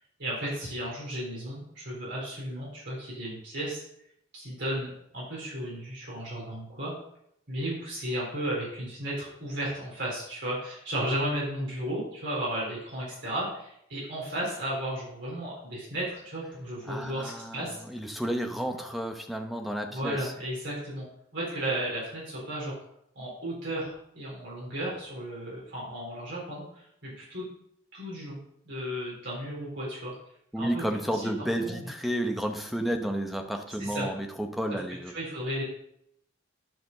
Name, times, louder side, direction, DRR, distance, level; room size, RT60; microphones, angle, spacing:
voice 1, 0.2-3.8 4.3-6.9 7.5-17.7 18.8-18.9 19.9-21.1 21.3-22.7 23.1-27.4 27.9-28.4 28.7-30.1 30.6-30.8 31.2-31.3 31.6-31.9 33.8-34.1 35.1-35.6, right 1 dB, 55° right, -6 dB, 4.1 m, -34 dB
voice 2, 16.9-20.3 30.5-35.1, right 1 dB, ahead, 4 dB, 0.9 m, -31 dB
10.5 x 5.1 x 6.7 m, 0.73 s
head